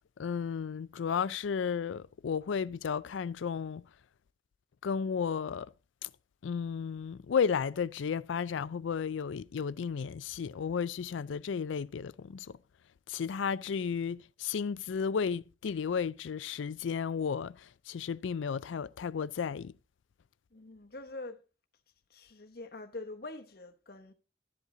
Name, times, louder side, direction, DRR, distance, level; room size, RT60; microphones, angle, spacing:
voice 1, 0.2-3.8 4.8-5.7 6.0-6.1 6.4-12.6 13.1-19.7, left 6 dB, 85° left, 0.4 m, -33 dB
voice 2, 20.5-21.4 22.1-24.1, left 2 dB, 50° left, 1.0 m, -44 dB
12.0 x 8.3 x 3.8 m
head